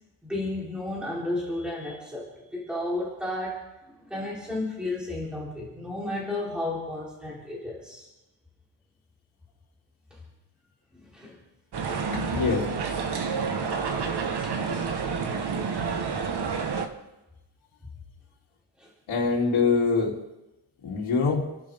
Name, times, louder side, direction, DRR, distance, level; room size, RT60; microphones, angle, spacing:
voice 1, 0.2-3.7 4.0-8.1 10.9-11.3 11.9-12.6 13.3-13.4 14.4-14.5 15.5-15.6 18.8-18.9, left 2 dB, ahead, -6 dB, 3.7 m, -33 dB
sound 1, 11.7-16.9, right 5 dB, 55° right, 1.5 m, -29 dB
voice 2, 12.1-12.6 19.1-20.2 20.8-21.5, left 4 dB, 80° left, -5 dB, 3.3 m, -24 dB
30.0 x 11.5 x 3.7 m, 0.97 s
wide cardioid pair, 170°, 47 cm